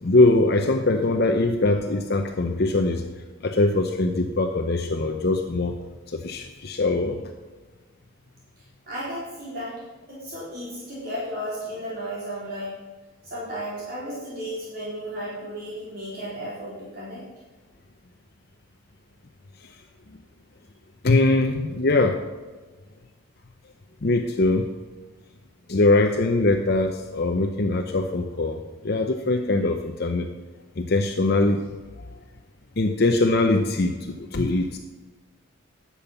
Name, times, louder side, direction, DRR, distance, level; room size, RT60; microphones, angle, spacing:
voice 1, 0.0-3.0 3.4-5.7 6.1-7.2 19.6-19.7 21.0-22.2 24.0-24.7 25.7-28.6 28.8-30.3 30.8-31.6 32.0-32.1 32.8-34.8, left 2 dB, 50° left, 4 dB, 0.7 m, -22 dB
voice 2, 8.6-9.8 10.1-12.8 13.2-17.2, equal, 45° right, -8 dB, 4.0 m, -34 dB
11.0 x 7.2 x 5.8 m, 1.3 s
head